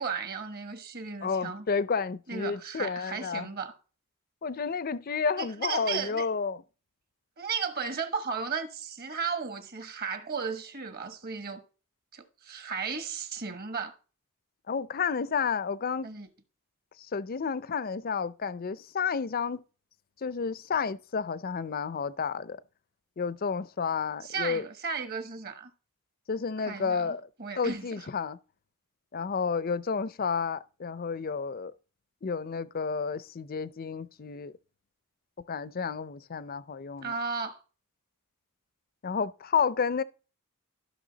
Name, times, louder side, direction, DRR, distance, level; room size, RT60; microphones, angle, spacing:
voice 1, 0.0-1.7 2.3-3.7 5.4-6.3 7.4-11.6 12.1-13.9 16.0-16.3 24.2-25.7 26.6-27.1 27.4-28.1 37.0-37.6, right 5 dB, 45° right, 1.3 m, -35 dB
voice 2, 1.2-3.5 4.4-6.6 14.7-16.1 17.1-19.6 20.2-22.6 23.2-24.6 26.3-27.2 27.6-28.4 29.1-31.7 32.2-34.5 35.5-37.1 39.0-40.0, left 5 dB, 40° left, 0.5 m, -31 dB
13.5 x 6.2 x 4.0 m
head